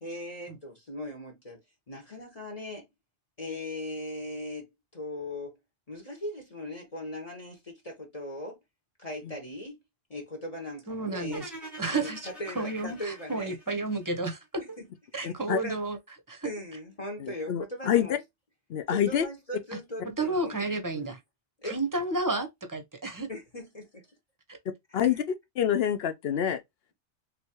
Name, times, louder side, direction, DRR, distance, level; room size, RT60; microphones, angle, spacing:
voice 1, 0.0-1.6 1.9-2.9 3.4-5.6 5.9-8.6 9.0-9.8 10.1-11.5 11.9-12.1 12.4-13.5 14.8-14.9 15.1-15.3 15.6-15.8 16.4-18.2 18.9-20.6 20.9-21.1 21.6-21.8 23.3-23.8 24.9-25.2, left 1 dB, 35° left, 1.1 m, -39 dB
voice 2, 10.9-11.5 11.8-12.3 12.5-14.6 15.1-16.0 16.3-16.5 19.7-19.8 20.0-21.2 21.6-23.3, right 2 dB, 20° right, 0.7 m, -31 dB
sound 1, 11.3-14.5, equal, ahead, 1.1 m, -45 dB
voice 3, 15.2-15.6 17.2-18.1 18.7-19.2 24.9-26.6, left 9 dB, 70° left, 0.9 m, -27 dB
3.5 x 3.0 x 2.8 m
omnidirectional pair, 1.1 m